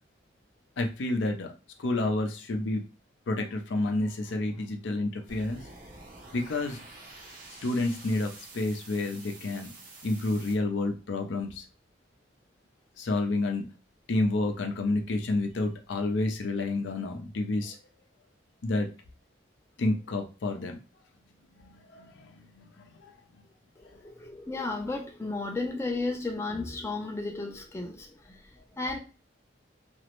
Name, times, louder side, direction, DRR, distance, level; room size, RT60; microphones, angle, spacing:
voice 1, 0.8-1.5 1.8-2.8 3.3-5.6 6.3-6.8 7.6-9.7 10.0-11.6 13.0-13.7 14.1-17.8 18.6-18.9 19.8-20.8 21.6-23.1 23.4-23.5, left 2 dB, 80° left, 4 dB, 0.5 m, -29 dB
sound 1, 5.3-10.5, right 2 dB, 45° right, 0.6 m, -48 dB
voice 2, 23.8-29.0, left 3 dB, 15° left, 2 dB, 0.4 m, -34 dB
2.4 x 2.0 x 2.9 m, 0.32 s
head